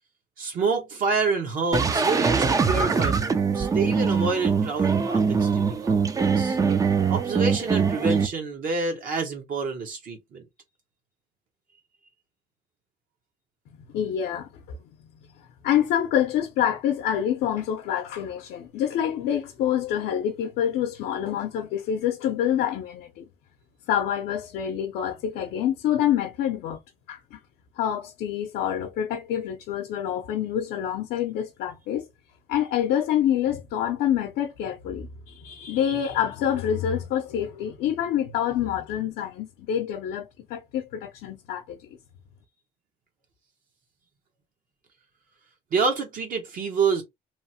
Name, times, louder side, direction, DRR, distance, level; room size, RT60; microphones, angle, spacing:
voice 1, 0.4-6.6 7.1-10.4 45.7-47.0, right 4 dB, 55° right, 0.9 m, -28 dB
sound 1, 1.7-8.3, right 5 dB, 20° right, 0.4 m, -23 dB
voice 2, 13.9-15.0 15.6-23.3 23.9-26.8 27.1-27.4 27.8-32.1 32.5-41.9, left 10 dB, 80° left, 0.6 m, -27 dB
3.0 x 2.0 x 2.7 m
cardioid pair, 110°, 17 cm